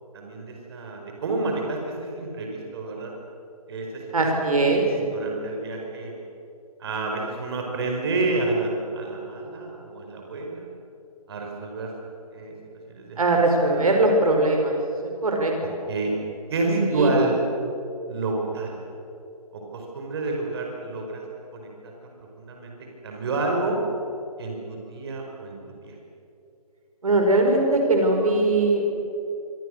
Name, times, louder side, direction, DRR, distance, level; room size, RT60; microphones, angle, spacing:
voice 1, 0.1-3.1 3.7-4.1 4.5-6.1 6.8-10.7 11.3-11.9 12.3-12.5 12.9-13.2 15.6-16.1 16.5-17.4 18.1-18.8 19.5-21.2 21.5-21.7 22.0-23.8 24.4-25.6 25.8-25.9, right 3 dB, 40° right, 1 dB, 5.2 m, -29 dB
voice 2, 4.1-4.9 13.2-14.7 15.2-15.5 16.9-17.1 27.0-28.9, right 2 dB, 65° right, 2 dB, 5.0 m, -20 dB
26.5 x 25.0 x 6.6 m, 2.8 s
figure-of-eight pair, 145°, 20 cm